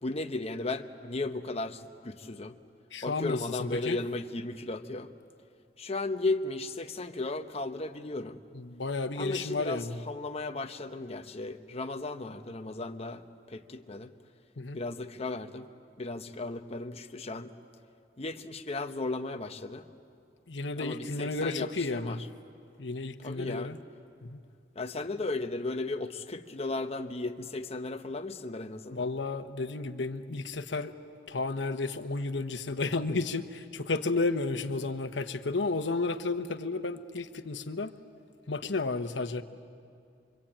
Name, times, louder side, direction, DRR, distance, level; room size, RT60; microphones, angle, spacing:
voice 1, 0.0-2.5 3.0-5.1 5.8-8.4 9.2-14.1 14.7-15.7 16.0-17.5 18.2-19.9 20.8-22.2 23.2-23.7 24.7-29.1, left 2 dB, 35° left, 7 dB, 1.0 m, -35 dB
voice 2, 2.9-4.0 8.5-10.0 14.6-14.8 20.5-22.2 22.8-23.8 24.2-24.4 28.9-30.9 31.3-37.9 38.5-39.4, left 3 dB, 85° left, 9 dB, 1.1 m, -32 dB
25.0 x 24.5 x 8.8 m, 2.4 s
head